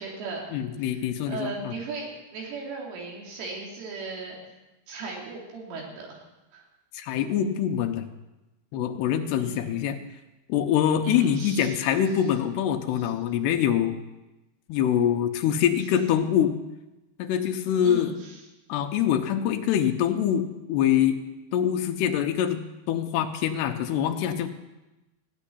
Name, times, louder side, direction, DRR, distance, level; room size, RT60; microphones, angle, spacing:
voice 1, 0.0-0.4 0.8-4.4 4.9-6.2 6.5-6.6 9.3-9.7 11.0-11.8 13.0-13.1 17.8-18.4, right 4 dB, 85° right, -2 dB, 5.4 m, -37 dB
voice 2, 0.5-1.7 6.9-8.0 8.7-10.0 10.5-14.0 14.7-16.5 17.2-18.1 18.7-21.2 21.5-24.5, left 9 dB, 80° left, 5 dB, 2.5 m, -24 dB
16.0 x 6.4 x 9.9 m, 1.0 s
omnidirectional pair, 5.6 m